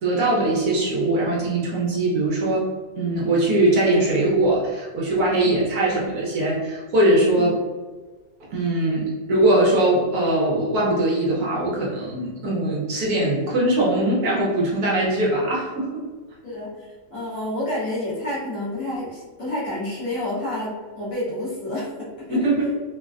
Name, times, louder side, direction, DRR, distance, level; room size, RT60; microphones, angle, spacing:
voice 1, 0.0-2.7 2.9-7.6 8.5-16.0 22.3-22.6, right 1 dB, 65° right, -5 dB, 1.1 m, -21 dB
voice 2, 16.4-22.7, left 1 dB, 50° left, -8 dB, 1.1 m, -29 dB
3.2 x 2.1 x 2.3 m, 1.3 s
omnidirectional pair, 1.9 m